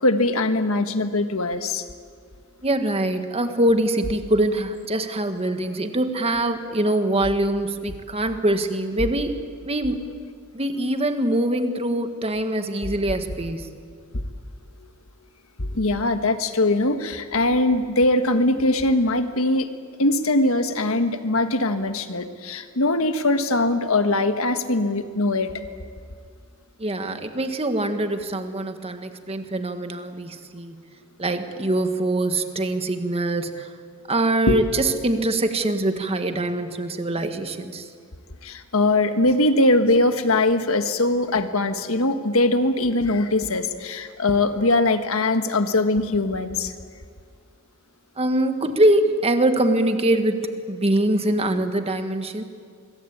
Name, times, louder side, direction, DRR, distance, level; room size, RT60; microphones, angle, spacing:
voice 1, 0.0-1.8 15.6-19.7 20.0-25.5 34.5-34.6 38.4-46.7, left 2 dB, 70° left, 8 dB, 1.6 m, -21 dB
voice 2, 2.6-9.4 9.6-10.0 10.5-13.7 26.8-30.8 31.2-33.7 34.1-37.9 48.2-50.4 50.7-52.4, right 1 dB, 30° right, 7 dB, 1.8 m, -23 dB
25.5 x 22.5 x 8.7 m, 2.1 s
head